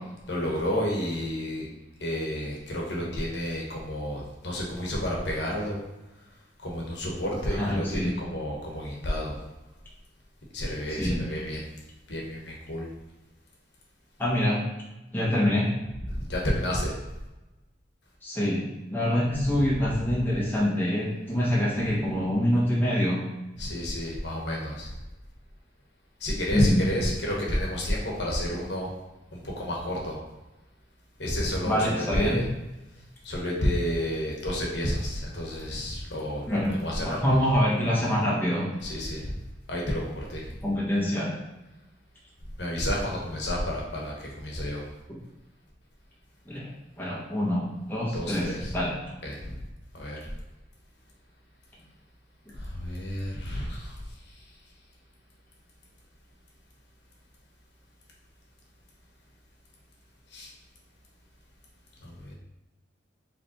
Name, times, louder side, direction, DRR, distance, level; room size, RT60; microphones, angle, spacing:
voice 1, 0.3-1.6 2.0-5.8 6.6-9.4 10.5-11.6 12.1-12.9 16.1-16.9 19.9-20.0 23.6-24.9 26.2-28.9 29.3-30.2 31.2-32.4 33.2-37.4 38.8-39.4 39.7-40.5 42.6-44.8 48.1-48.7 49.2-49.6 49.9-50.2 52.5-54.0 60.3-60.5 62.0-62.3, equal, 65° left, -2 dB, 1.1 m, -30 dB
voice 2, 7.6-8.1 10.9-11.2 14.2-14.6 15.1-15.7 18.2-23.2 26.5-26.8 31.6-32.4 36.5-38.7 40.6-41.3 46.5-48.9, equal, 10° left, -6 dB, 1.0 m, -25 dB
4.8 x 3.3 x 2.9 m, 1.0 s
head